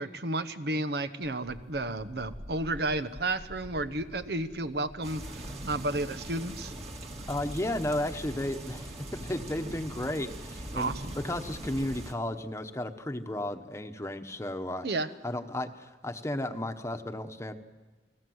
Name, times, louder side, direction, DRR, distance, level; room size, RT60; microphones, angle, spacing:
voice 1, 0.0-6.7 10.7-11.1 14.8-15.1, right 2 dB, 65° right, 10 dB, 1.0 m, -32 dB
Wind, 1.2-7.1, equal, 80° right, 2.4 m, -49 dB
sound 1, 5.0-12.1, right 1 dB, 35° right, 2.2 m, -41 dB
voice 2, 7.3-14.9 15.2-17.5, left 1 dB, 15° left, 7 dB, 1.1 m, -34 dB
29.5 x 19.5 x 8.0 m, 1.3 s
head